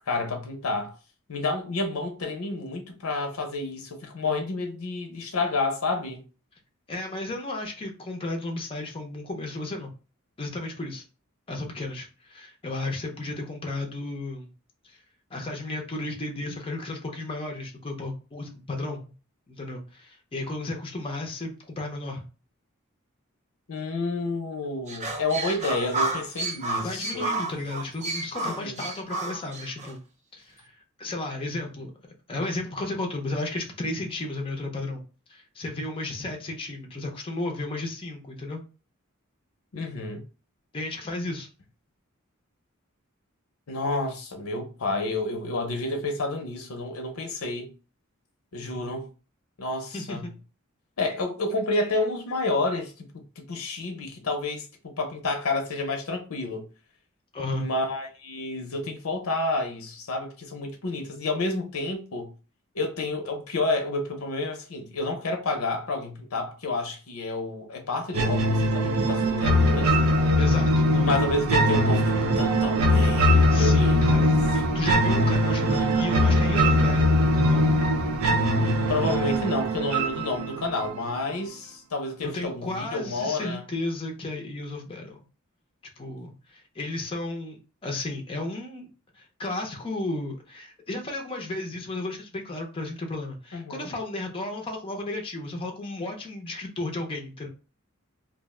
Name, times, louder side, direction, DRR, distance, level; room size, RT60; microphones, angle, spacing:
voice 1, 0.1-0.9 1.3-6.2 23.7-27.3 28.4-28.8 39.7-40.2 43.7-47.7 48.5-49.1 49.6-50.2 51.0-52.9 53.4-54.7 55.0-56.6 57.5-62.3 62.7-69.9 71.0-74.3 78.6-83.6 93.5-93.9, left 2 dB, 85° left, 0.7 m, -30 dB
voice 2, 6.9-9.9 10.4-11.0 11.5-14.5 14.8-15.0 15.3-19.1 19.5-22.2 26.8-30.0 30.3-31.9 32.3-35.0 35.3-38.6 40.7-41.5 48.6-48.9 49.9-50.4 57.3-57.7 70.4-71.2 73.5-77.7 82.2-85.2 86.0-88.9 89.1-97.5, left 2 dB, 25° left, 0.5 m, -33 dB
sound 1, 24.9-29.9, right 2 dB, 35° right, 0.5 m, -31 dB
sound 2, 68.1-81.1, equal, 80° right, 0.5 m, -21 dB
2.5 x 2.1 x 3.6 m
head